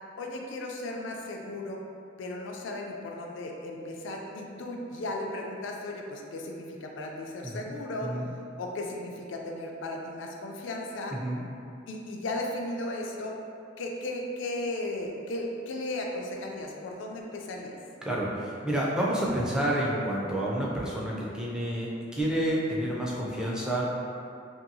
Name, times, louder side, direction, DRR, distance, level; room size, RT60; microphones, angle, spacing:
voice 1, 0.2-1.8 2.2-8.2 8.6-11.2 11.9-13.4 13.8-17.8, left 1 dB, 70° left, 1 dB, 0.4 m, -35 dB
voice 2, 7.4-7.7 8.0-8.3 11.1-11.4 18.0-23.9, right 1 dB, 5° right, -5 dB, 0.3 m, -29 dB
2.7 x 2.6 x 2.6 m, 2.5 s
head